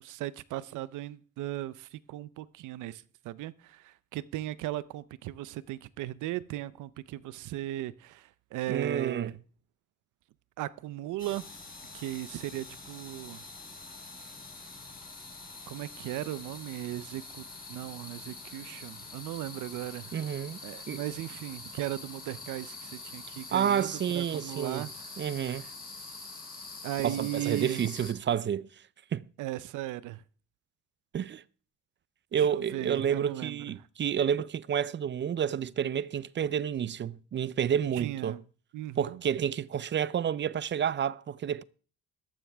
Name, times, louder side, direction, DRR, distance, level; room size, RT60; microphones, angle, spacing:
voice 1, 0.0-9.4 10.6-11.4 11.9-13.4 15.7-17.4 17.7-20.1 20.6-24.9 25.4-25.7 26.8-27.9 29.4-30.2 32.4-33.6 37.9-38.4 38.7-39.2, right 14 dB, 85° right, 0.6 m, -37 dB
voice 2, 8.7-9.3 20.1-20.6 20.9-21.0 23.5-24.9 25.2-25.7 27.0-28.7 29.1-29.3 31.1-31.4 32.3-38.4 39.0-41.6, right 8 dB, 40° right, 0.5 m, -30 dB
sound 1, 11.2-28.1, left 3 dB, 30° left, 3.9 m, -45 dB
14.0 x 12.0 x 3.4 m
cardioid pair, 90°, 30 cm